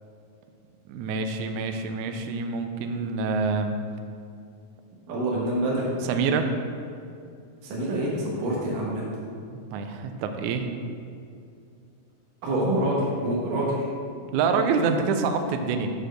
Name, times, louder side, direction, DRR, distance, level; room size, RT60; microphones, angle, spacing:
voice 1, 0.9-3.8 6.0-6.5 9.5-10.7 14.3-15.9, right 5 dB, 85° right, 6 dB, 1.7 m, -26 dB
voice 2, 5.1-5.9 7.6-9.1 12.4-13.9, right 1 dB, 70° right, -5 dB, 2.7 m, -26 dB
7.3 x 4.4 x 6.3 m, 2.5 s
omnidirectional pair, 4.2 m